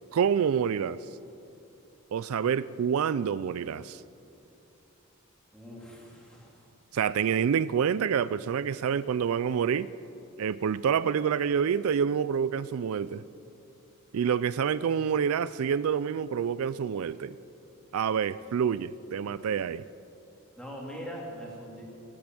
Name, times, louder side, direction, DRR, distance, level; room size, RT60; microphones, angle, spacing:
voice 1, 0.1-1.0 2.1-4.0 6.9-9.9 10.4-13.2 14.1-17.4 17.9-19.8, right 7 dB, 75° right, 17 dB, 0.4 m, -27 dB
voice 2, 5.5-6.7 20.6-21.8, equal, 5° left, -3 dB, 2.7 m, -42 dB
20.0 x 8.7 x 7.6 m, 2.8 s
head